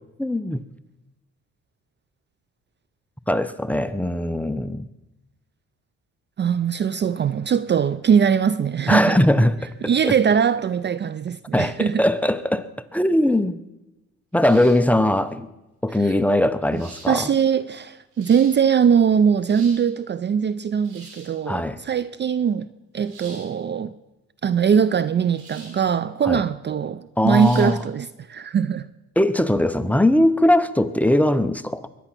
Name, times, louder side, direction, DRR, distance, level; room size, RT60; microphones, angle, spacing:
voice 1, 0.2-0.6 3.3-4.8 8.9-9.6 10.0-10.1 11.5-13.6 14.3-15.5 15.8-17.3 21.5-21.8 26.2-26.4 27.2-27.8 29.2-31.9, left 1 dB, 5° left, 0.7 m, -20 dB
voice 2, 6.4-9.2 9.8-12.0 16.0-16.1 16.7-16.8 17.1-22.7 22.9-23.9 24.4-28.9, right 7 dB, 35° right, 0.5 m, -21 dB
sound 1, 14.4-14.9 15.9-16.0 16.7-17.1 17.9-18.5 19.3-19.8 20.8-21.3 23.0-23.4 25.3-25.8 26.2-26.3 27.3-27.7, right 3 dB, 85° right, 6.8 m, -44 dB
22.5 x 9.8 x 6.0 m
cardioid pair, 90°, 30 cm